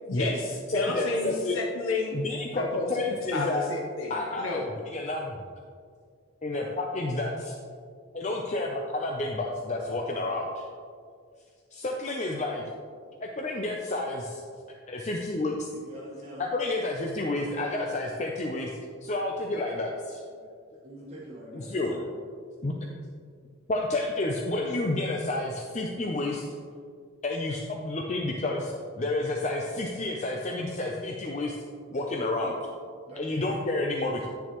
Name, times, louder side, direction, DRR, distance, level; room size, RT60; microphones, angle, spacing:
voice 1, 0.1-2.2 2.5-4.7, left 2 dB, 85° left, 1 dB, 0.7 m, -32 dB
voice 2, 0.7-1.6 2.1-3.7 4.1-5.4 6.4-7.6 8.1-10.7 11.7-12.6 13.2-14.4 14.9-15.7 16.4-18.7 19.0-20.2 21.5-22.0 22.6-22.7 23.7-26.5 27.2-31.5 31.9-32.6 33.2-34.3, left 2 dB, 35° left, 0 dB, 0.5 m, -30 dB
voice 3, 15.7-16.5 20.8-22.2 33.1-33.6 34.0-34.3, equal, 30° right, -6 dB, 1.3 m, -44 dB
10.0 x 6.8 x 3.0 m, 2.1 s
head